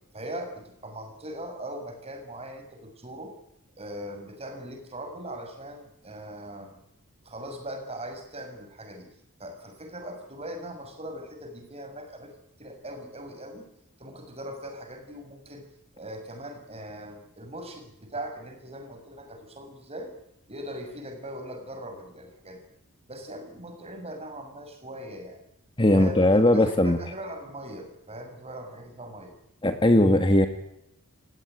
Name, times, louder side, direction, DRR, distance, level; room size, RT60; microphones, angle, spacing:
voice 1, 0.1-3.3 3.8-6.8 7.2-9.1 9.4-12.3 12.6-13.7 14.0-15.7 15.9-20.1 20.5-22.6 23.1-25.4 25.8-26.3 26.5-29.3, right 1 dB, 30° right, 5 dB, 6.9 m, -40 dB
voice 2, 25.8-27.0 29.6-30.5, left 1 dB, 20° left, 7 dB, 1.6 m, -19 dB
29.5 x 17.0 x 9.6 m, 0.82 s
head